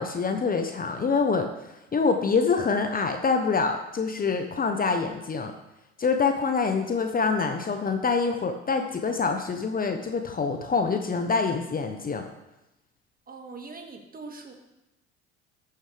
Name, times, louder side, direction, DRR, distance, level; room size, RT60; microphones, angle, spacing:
voice 1, 0.0-1.5 1.9-5.5 6.0-12.3, left 4 dB, 25° left, 6 dB, 0.9 m, -25 dB
voice 2, 13.3-14.5, right 3 dB, 25° right, 4 dB, 1.8 m, -42 dB
14.0 x 6.7 x 3.4 m, 0.93 s
hypercardioid pair, 65°, 33 cm